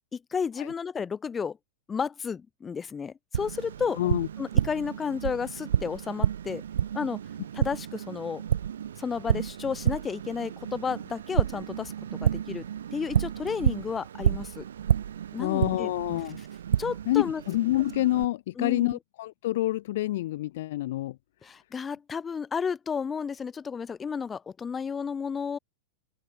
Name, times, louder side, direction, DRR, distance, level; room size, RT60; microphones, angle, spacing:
voice 1, 0.1-1.6 1.9-4.0 4.4-6.6 6.9-7.2 7.5-8.4 9.0-11.9 12.2-12.7 12.9-14.6 15.3-15.9 16.8-17.4 18.6-19.0 21.4-25.6, left 6 dB, 20° left, 1.2 m, -32 dB
Tap, 3.3-18.3, right 9 dB, 75° right, 2.3 m, -30 dB
voice 2, 4.0-4.3 15.4-16.4 17.1-21.2, left 15 dB, 60° left, 0.5 m, -27 dB
open air
hypercardioid pair, 100°, 0 cm